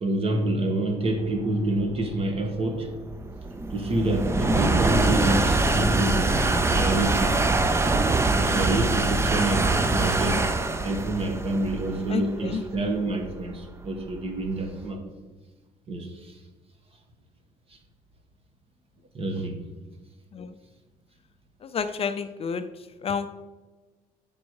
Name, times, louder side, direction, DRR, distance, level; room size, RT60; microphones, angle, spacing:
voice 1, 0.0-2.9 3.7-7.3 8.4-10.4 10.8-15.0 15.9-16.3 19.1-19.6, right 1 dB, 40° right, 5 dB, 1.4 m, -27 dB
sound 1, 1.4-14.7, right 2 dB, 15° right, 0.5 m, -24 dB
voice 2, 12.1-12.6 20.3-20.5 21.7-22.6 23.0-23.3, left 6 dB, 40° left, 10 dB, 0.5 m, -29 dB
8.3 x 5.4 x 4.7 m, 1.2 s
cardioid pair, 110°, 16 cm